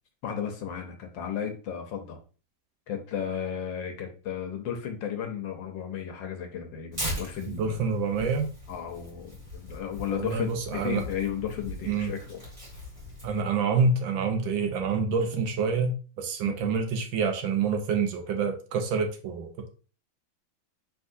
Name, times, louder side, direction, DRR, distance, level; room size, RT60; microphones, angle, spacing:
voice 1, 0.2-2.2 2.9-7.8 8.7-12.4 16.5-16.6, left 8 dB, 70° left, 5 dB, 1.3 m, -34 dB
Tearing, 6.9-13.4, equal, 25° right, 1.8 m, -40 dB
voice 2, 7.5-8.5 10.1-11.0 11.9-12.1 13.2-19.7, right 5 dB, 75° right, 4 dB, 1.4 m, -27 dB
4.8 x 3.6 x 2.6 m, 0.36 s
omnidirectional pair, 2.2 m